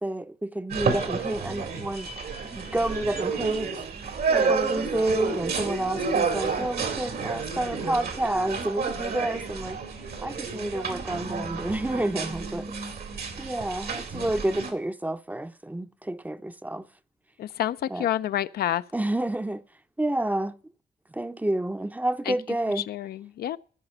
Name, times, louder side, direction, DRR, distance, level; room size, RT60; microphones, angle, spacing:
voice 1, 0.0-2.1 2.5-3.7 4.3-9.8 10.2-12.7 13.4-16.9 17.9-18.1 18.9-19.6 20.0-20.5 21.1-22.8, right 1 dB, 10° right, 0.5 m, -29 dB
sound 1, 0.7-14.7, right 5 dB, 75° right, 2.1 m, -30 dB
voice 2, 17.4-18.8 22.3-22.4 22.8-23.6, left 12 dB, 85° left, 0.4 m, -28 dB
14.0 x 5.0 x 6.8 m
cardioid pair, 95°, 16 cm